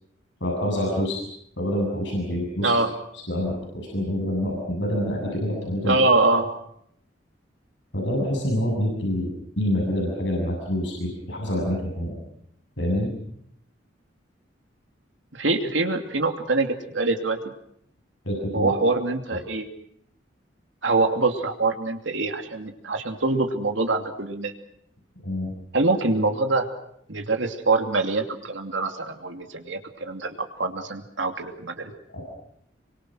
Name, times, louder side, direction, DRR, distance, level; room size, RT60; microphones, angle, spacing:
voice 1, 0.4-1.2 1.6-2.7 3.3-5.9 7.9-12.2 12.8-13.1 18.2-18.7 25.2-25.5 32.1-32.2, equal, 75° left, -1 dB, 7.5 m, -26 dB
voice 2, 2.6-2.9 5.8-6.5 15.3-17.4 18.5-19.7 20.8-24.5 25.7-26.7 27.1-31.9, right 3 dB, 90° right, 4 dB, 2.8 m, -24 dB
27.0 x 24.0 x 6.3 m, 0.71 s
head